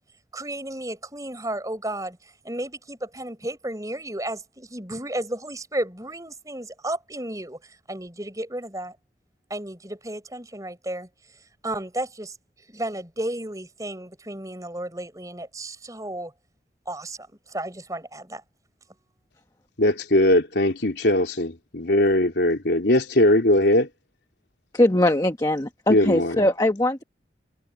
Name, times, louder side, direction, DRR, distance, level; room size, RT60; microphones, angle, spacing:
voice 1, 0.3-9.0 9.5-11.1 11.6-12.4 12.7-16.3 16.9-18.4, right 1 dB, 20° right, 6.9 m, -33 dB
voice 2, 19.8-23.9 25.9-26.4, left 1 dB, 75° left, 3.1 m, -20 dB
voice 3, 24.7-27.0, left 1 dB, 20° left, 1.2 m, -21 dB
head